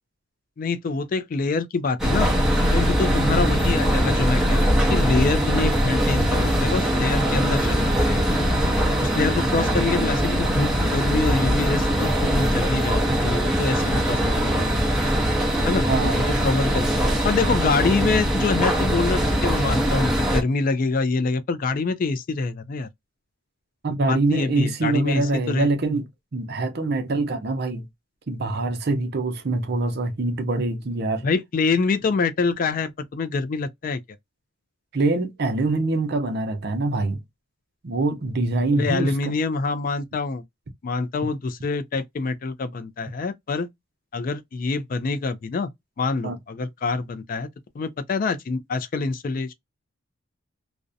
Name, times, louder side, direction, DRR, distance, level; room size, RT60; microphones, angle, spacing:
voice 1, 0.6-2.3 2.7-8.3 9.0-14.7 15.7-15.9 16.1-16.9 17.2-22.9 24.1-25.7 31.2-34.0 38.7-40.4 40.8-43.7 44.1-45.7 46.0-47.5 47.8-49.5, left 4 dB, 40° left, 0.3 m, -25 dB
sound 1, 2.0-20.4, equal, 5° right, 0.6 m, -21 dB
voice 2, 15.9-16.3 23.8-27.9 28.3-31.3 34.9-37.2 37.8-39.3 46.2-46.4, right 2 dB, 50° right, 0.6 m, -24 dB
2.4 x 2.1 x 2.5 m
head